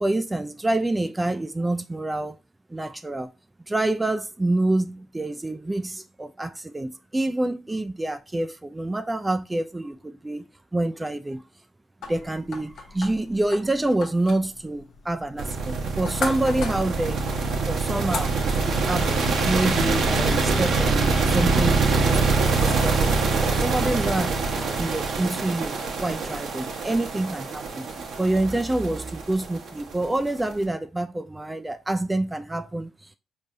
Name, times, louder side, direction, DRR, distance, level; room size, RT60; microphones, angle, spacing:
voice 1, 0.0-2.4 2.7-3.3 3.7-10.5 10.7-11.4 12.1-17.2 17.6-18.3 18.7-24.3 24.8-27.9 28.2-33.2, right 2 dB, 20° right, 0.4 m, -27 dB
sound 1, 12.0-19.3, left 4 dB, 70° left, 0.8 m, -38 dB
sound 2, 15.4-30.5, right 4 dB, 65° right, 0.8 m, -24 dB
4.2 x 3.3 x 2.6 m
hypercardioid pair, 50°, 0 cm